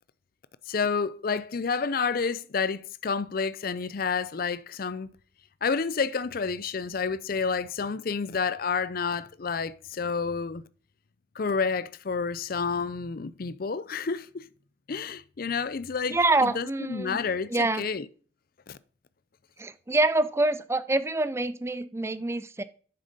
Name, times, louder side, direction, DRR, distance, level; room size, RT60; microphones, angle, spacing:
voice 1, 0.7-5.1 5.6-10.6 11.4-14.4 14.9-18.1 18.7-18.8, left 5 dB, 45° left, 0.5 m, -29 dB
voice 2, 16.1-17.2 17.5-17.9 19.6-22.6, right 2 dB, 15° right, 0.4 m, -26 dB
8.7 x 6.7 x 5.2 m
head